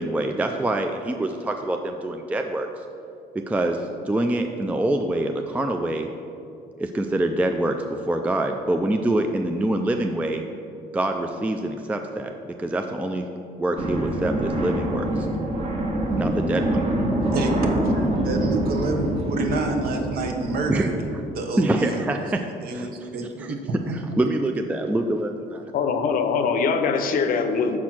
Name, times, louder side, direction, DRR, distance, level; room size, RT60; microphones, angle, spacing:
voice 1, 0.0-2.7 3.4-6.1 6.8-10.4 10.9-13.3 13.6-15.3 16.2-16.8 20.7-20.9 21.6-22.9 23.4-25.6, right 1 dB, 10° right, 5 dB, 0.3 m, -25 dB
sound 1, 13.8-21.2, right 1 dB, 40° right, 1.3 m, -25 dB
voice 2, 17.2-20.9 21.3-22.0 22.6-24.0, right 2 dB, 65° right, 3 dB, 1.0 m, -28 dB
voice 3, 25.7-27.8, left 5 dB, 55° left, 7 dB, 0.6 m, -22 dB
6.1 x 4.4 x 5.9 m, 2.6 s
cardioid pair, 110°, 17 cm